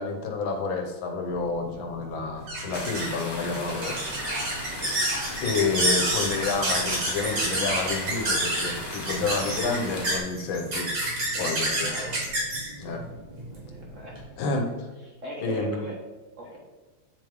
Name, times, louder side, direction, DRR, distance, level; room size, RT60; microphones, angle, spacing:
voice 1, 0.0-4.7 5.4-10.9 11.4-11.9 12.8-13.0 14.4-14.7 15.4-15.8, left 4 dB, 70° left, 3 dB, 1.7 m, -29 dB
sound 1, 1.3-14.2, right 1 dB, 75° right, 3.0 m, -29 dB
sound 2, 2.7-10.2, left 1 dB, 20° left, 0.7 m, -37 dB
voice 2, 11.3-12.2 13.4-14.5 15.1-16.0 16.4-16.6, right 1 dB, 45° right, -2 dB, 1.2 m, -40 dB
8.6 x 3.5 x 4.7 m, 1.2 s
omnidirectional pair, 2.3 m